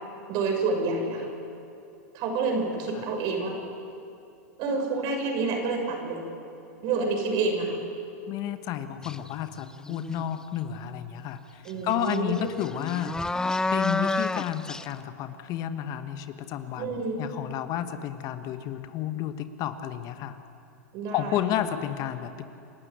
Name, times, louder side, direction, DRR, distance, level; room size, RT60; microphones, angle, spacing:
voice 1, 0.3-1.3 2.1-3.5 4.6-6.2 6.8-7.8 11.6-12.5 16.8-17.2 20.9-21.4, right 3 dB, 50° right, 2 dB, 6.5 m, -28 dB
voice 2, 8.3-13.2 13.7-20.4 21.1-22.5, left 10 dB, 45° left, 9 dB, 1.3 m, -31 dB
sound 1, 9.0-9.3 9.7-10.4 11.7-11.8 12.1-14.9, left 2 dB, 5° left, 0.5 m, -29 dB
28.5 x 12.5 x 9.6 m, 2.7 s
hypercardioid pair, 105°, 9 cm